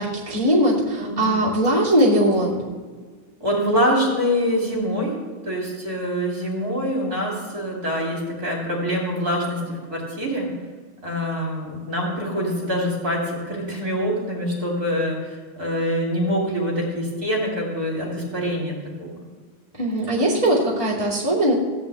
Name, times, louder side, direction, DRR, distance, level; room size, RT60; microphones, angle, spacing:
voice 1, 0.0-2.7 19.8-21.5, right 1 dB, 15° left, -7 dB, 1.9 m, -20 dB
voice 2, 1.0-1.4 3.4-10.5 11.0-18.7 19.0-19.3, equal, 30° right, -2 dB, 2.9 m, -25 dB
15.0 x 5.3 x 8.5 m, 1.5 s
omnidirectional pair, 3.3 m